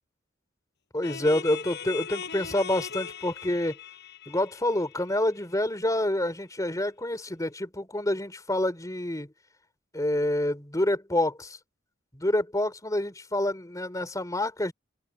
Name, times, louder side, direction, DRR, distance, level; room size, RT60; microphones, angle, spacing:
voice 1, 0.9-3.8 4.3-9.3 9.9-11.6 12.1-14.7, left 1 dB, 20° left, 3.6 m, -27 dB
sound 1, 1.0-5.6, left 7 dB, 60° left, 7.3 m, -39 dB
head